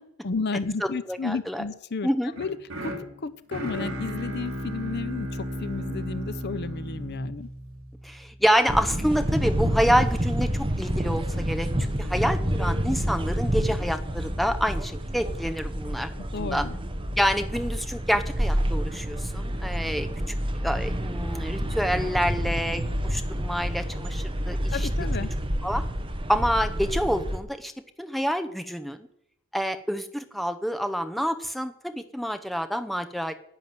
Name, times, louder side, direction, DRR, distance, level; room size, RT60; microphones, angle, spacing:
voice 1, 0.2-2.1 2.4-2.6 2.8-2.9 3.2-7.5 16.2-16.8 24.7-25.3, left 4 dB, 50° left, 15 dB, 0.7 m, -32 dB
voice 2, 0.8-1.6 2.0-2.3 8.0-16.7 17.2-20.1 20.6-24.9 25.6-25.8 26.3-27.7 28.0-29.1 29.5-33.3, equal, ahead, 9 dB, 0.7 m, -27 dB
sound 1, 2.3-8.4, equal, 70° right, 2.9 m, -34 dB
sound 2, 8.7-27.4, equal, 25° right, 1.1 m, -28 dB
10.5 x 9.3 x 7.6 m, 0.78 s
head